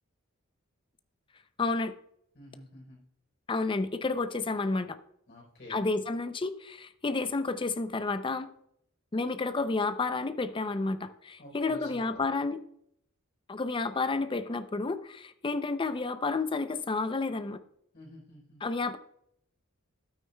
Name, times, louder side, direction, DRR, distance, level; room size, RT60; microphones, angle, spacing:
voice 1, 1.6-1.9 3.5-5.0 5.7-8.5 9.1-12.6 13.5-17.6 18.6-19.0, left 3 dB, 25° left, 11 dB, 0.5 m, -30 dB
voice 2, 2.3-3.0 5.3-5.8 11.4-12.0 17.9-18.6, left 1 dB, 55° left, -2 dB, 3.8 m, -49 dB
12.5 x 8.9 x 2.2 m, 0.72 s
head